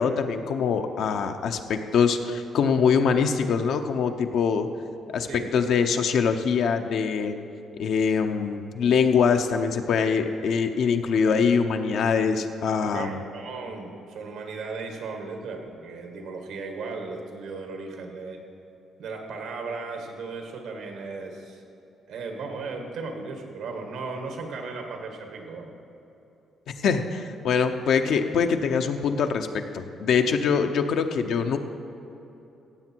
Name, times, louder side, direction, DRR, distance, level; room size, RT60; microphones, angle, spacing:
voice 1, 0.0-4.7 5.1-7.4 7.8-13.2 26.8-31.6, left 6 dB, 70° left, 6 dB, 0.8 m, -23 dB
voice 2, 12.8-18.4 19.0-21.6 22.1-25.7, right 4 dB, 85° right, 3 dB, 1.8 m, -36 dB
16.0 x 7.6 x 4.6 m, 2.9 s
cardioid pair, 90°, 0 cm